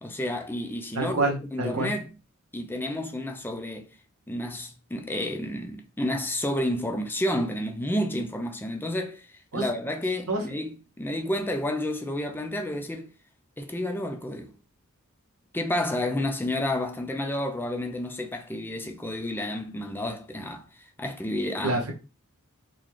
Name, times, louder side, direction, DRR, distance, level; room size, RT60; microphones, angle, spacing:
voice 1, 0.0-2.1 2.5-3.9 4.3-13.1 13.6-14.5 15.5-21.8, left 1 dB, 10° left, 0.4 m, -30 dB
voice 2, 0.9-1.9 9.5-9.6 10.3-10.4 21.6-21.9, right 2 dB, 85° right, 1.0 m, -27 dB
3.9 x 2.2 x 3.1 m
head